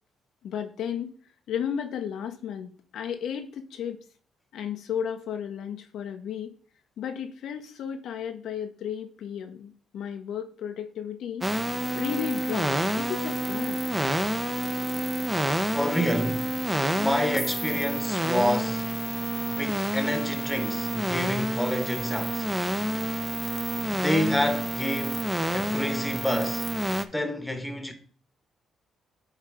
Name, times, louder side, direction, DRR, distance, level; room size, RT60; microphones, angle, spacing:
voice 1, 0.4-1.2 1.5-4.0 4.5-6.5 7.0-11.5 11.9-13.8, left 8 dB, 75° left, 0.8 m, -34 dB
sound 1, 11.4-27.0, right 1 dB, 10° right, 0.7 m, -28 dB
voice 2, 15.7-16.5 16.9-18.9 19.5-22.5 23.9-25.2 25.5-26.7 27.1-27.9, left 1 dB, 5° left, 1.2 m, -28 dB
9.0 x 3.2 x 4.9 m
cardioid pair, 90°, 0 cm